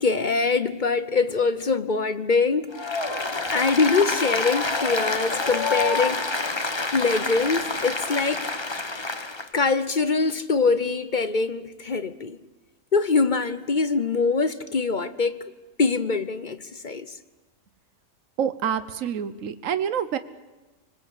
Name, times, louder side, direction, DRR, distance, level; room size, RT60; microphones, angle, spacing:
voice 1, 0.0-3.1 3.5-6.3 6.9-8.5 9.5-12.4 12.9-15.4 15.8-17.2, left 4 dB, 40° left, 0.9 m, -23 dB
Applause, 2.7-9.5, left 3 dB, 20° left, 1.3 m, -27 dB
voice 2, 18.4-20.2, right 8 dB, 70° right, 1.3 m, -27 dB
27.5 x 20.0 x 8.4 m
omnidirectional pair, 1.4 m